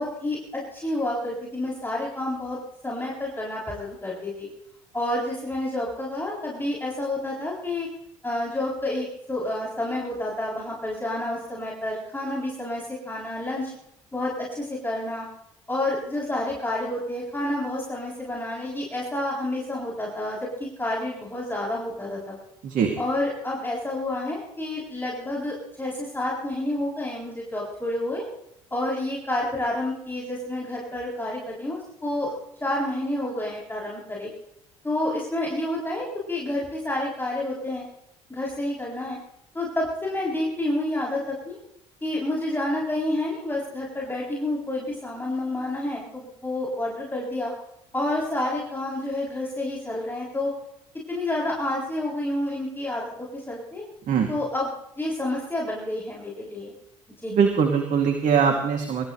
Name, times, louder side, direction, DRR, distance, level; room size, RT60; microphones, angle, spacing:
voice 1, 0.0-2.6 2.8-4.5 4.9-7.9 8.2-13.7 14.1-15.2 15.7-22.3 23.0-28.3 28.7-32.3 32.6-34.3 34.8-37.9 38.3-39.2 39.5-41.6 42.0-47.5 47.9-50.5 51.1-53.8 54.3-54.7 55.0-56.7 57.2-57.3, left 1 dB, 15° left, -5 dB, 7.7 m, -29 dB
voice 2, 57.3-59.0, right 6 dB, 60° right, 3 dB, 2.7 m, -21 dB
27.5 x 15.0 x 3.3 m, 0.78 s
hypercardioid pair, 60°, 15 cm